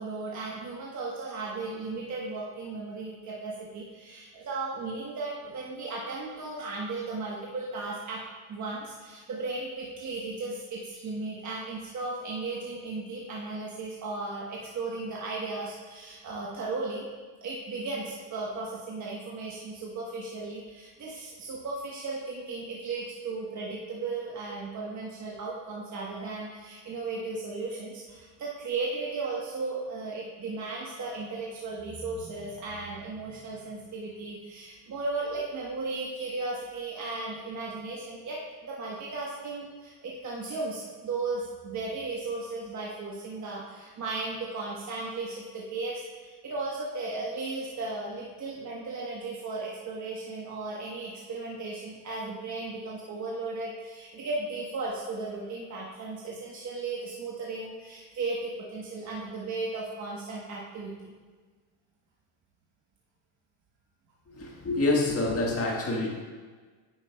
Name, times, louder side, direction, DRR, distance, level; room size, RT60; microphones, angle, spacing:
voice 1, 0.0-8.2 8.5-17.1 17.4-61.1, right 3 dB, 40° right, -4 dB, 1.2 m, -35 dB
voice 2, 64.3-66.2, left 2 dB, 30° left, -2 dB, 1.6 m, -27 dB
9.5 x 6.9 x 2.3 m, 1.4 s
cardioid pair, 115°, 44 cm